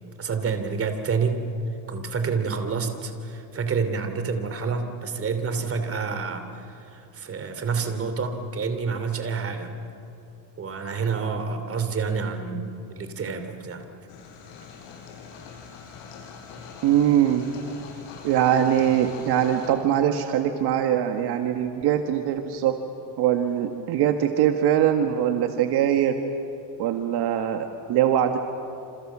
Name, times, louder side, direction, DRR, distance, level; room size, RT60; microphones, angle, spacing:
voice 1, 0.2-1.4 1.9-9.7 10.6-13.9, right 5 dB, 30° right, 7 dB, 2.9 m, -28 dB
sound 1, 14.1-19.7, left 5 dB, 80° left, 6.4 m, -43 dB
voice 2, 16.8-17.5 18.2-22.8 23.2-26.2 26.8-28.4, right 10 dB, 60° right, 6 dB, 1.7 m, -22 dB
28.0 x 27.5 x 7.4 m, 2.9 s
cardioid pair, 140°, 43 cm